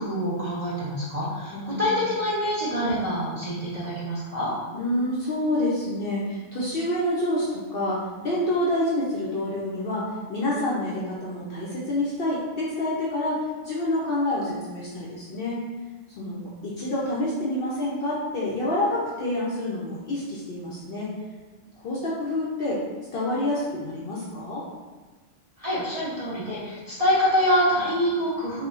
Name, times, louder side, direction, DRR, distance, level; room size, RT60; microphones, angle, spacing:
voice 1, 0.0-4.5 25.6-28.7, equal, 35° right, -9 dB, 0.6 m, -25 dB
voice 2, 1.5-2.0 4.7-15.6 16.2-21.1 21.8-22.8 23.1-24.6, left 1 dB, 60° left, -6 dB, 0.6 m, -28 dB
4.2 x 2.1 x 2.4 m, 1.2 s
omnidirectional pair, 1.3 m